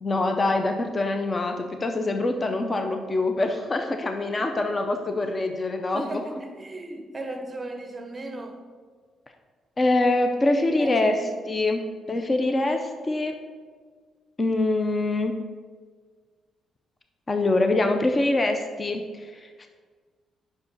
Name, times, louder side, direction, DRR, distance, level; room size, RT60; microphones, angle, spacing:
voice 1, 0.0-6.1 9.8-11.2 11.5-13.4 14.4-15.4 17.3-19.0 19.4-19.7, left 2 dB, 25° left, 6 dB, 0.4 m, -24 dB
voice 2, 5.9-8.6 10.8-11.2, right 1 dB, 20° right, 5 dB, 0.7 m, -36 dB
5.6 x 4.8 x 5.2 m, 1.6 s
cardioid pair, 150°, 0 cm